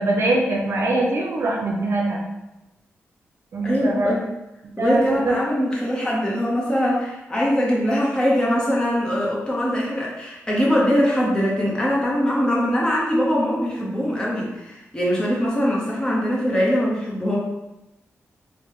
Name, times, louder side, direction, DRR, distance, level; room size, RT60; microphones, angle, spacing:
voice 1, 0.0-2.2 3.5-4.2 4.7-5.3, right 2 dB, 60° right, 0 dB, 0.5 m, -22 dB
voice 2, 3.6-4.2 4.8-17.4, equal, 15° left, -5 dB, 0.9 m, -22 dB
3.2 x 2.2 x 3.0 m, 0.99 s
cardioid pair, 85°, 5 cm